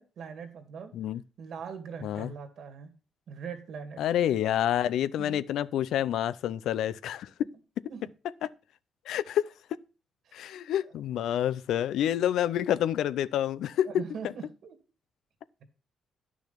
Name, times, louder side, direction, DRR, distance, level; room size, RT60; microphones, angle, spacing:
voice 1, 0.0-0.9 1.4-2.9 3.3-4.0 5.2-5.4 7.9-8.0 10.3-10.5 13.9-14.7, right 6 dB, 60° right, 2.3 m, -41 dB
voice 2, 4.0-7.3 8.4-8.5 9.1-9.5 10.3-14.3, left 11 dB, 85° left, 0.5 m, -28 dB
10.5 x 6.2 x 5.7 m
cardioid pair, 130°, 0 cm